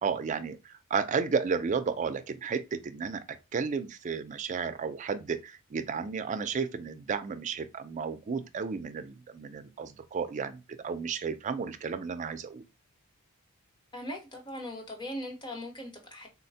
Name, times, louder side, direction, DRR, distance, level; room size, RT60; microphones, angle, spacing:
voice 1, 0.0-3.2 3.5-12.7, right 5 dB, 35° right, 0.3 m, -33 dB
voice 2, 13.9-16.3, left 1 dB, 20° left, 0.9 m, -39 dB
3.9 x 2.1 x 2.6 m
head